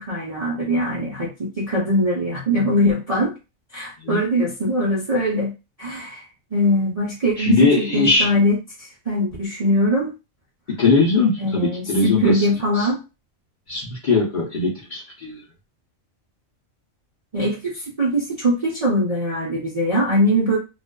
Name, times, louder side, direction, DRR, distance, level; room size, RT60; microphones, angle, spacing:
voice 1, 0.0-3.3 3.7-5.5 5.8-6.2 6.5-10.1 11.4-13.0 17.3-17.7 18.0-20.6, equal, 45° right, -6 dB, 0.5 m, -22 dB
voice 2, 7.4-8.3 10.7-12.5 12.8-12.9 13.7-15.4, left 3 dB, 45° left, -4 dB, 0.7 m, -20 dB
2.4 x 2.4 x 2.2 m, 0.28 s
omnidirectional pair, 1.4 m